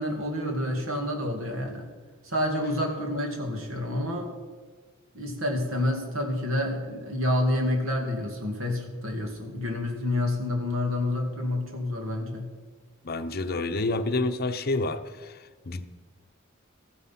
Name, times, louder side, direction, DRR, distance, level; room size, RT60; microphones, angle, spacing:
voice 1, 0.0-1.9 2.2-4.3 5.1-12.5, left 1 dB, 70° right, 3 dB, 2.4 m, -28 dB
voice 2, 13.0-15.8, left 2 dB, 45° left, 9 dB, 0.8 m, -29 dB
14.0 x 9.7 x 5.9 m, 1.4 s
head